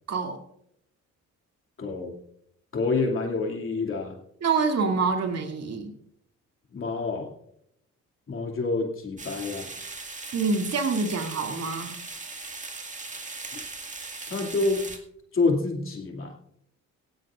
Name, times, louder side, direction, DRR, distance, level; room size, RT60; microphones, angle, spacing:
voice 1, 0.1-0.4 4.4-5.9 10.3-12.0, right 4 dB, 55° right, 3 dB, 2.6 m, -26 dB
voice 2, 1.8-2.1 2.7-4.2 6.7-7.3 8.3-9.7 13.5-13.6 14.3-14.9 15.3-16.3, left 3 dB, 45° left, 1 dB, 2.6 m, -27 dB
sound 1, 9.2-15.0, right 3 dB, 25° right, 2.0 m, -39 dB
17.5 x 16.0 x 2.5 m, 0.75 s
cardioid pair, 90°, 30 cm